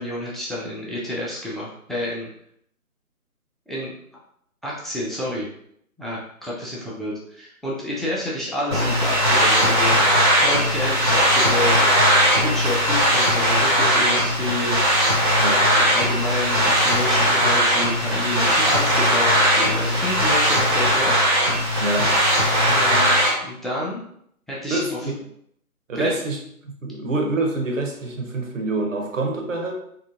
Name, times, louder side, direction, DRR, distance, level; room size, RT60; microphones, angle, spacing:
voice 1, 0.0-2.3 3.7-3.9 4.6-5.5 6.0-10.0 10.4-11.8 12.3-14.8 15.6-21.1 22.6-23.1 23.4-24.0 24.5-24.8 26.0-26.2, left 1 dB, ahead, -6 dB, 0.4 m, -29 dB
sound 1, 8.7-23.3, equal, 15° right, 0.9 m, -19 dB
voice 2, 21.8-22.1 24.7-25.1 25.9-26.4 26.8-29.7, right 2 dB, 60° right, 2 dB, 0.9 m, -25 dB
3.5 x 2.4 x 2.4 m, 0.69 s
figure-of-eight pair, 160°, 45 cm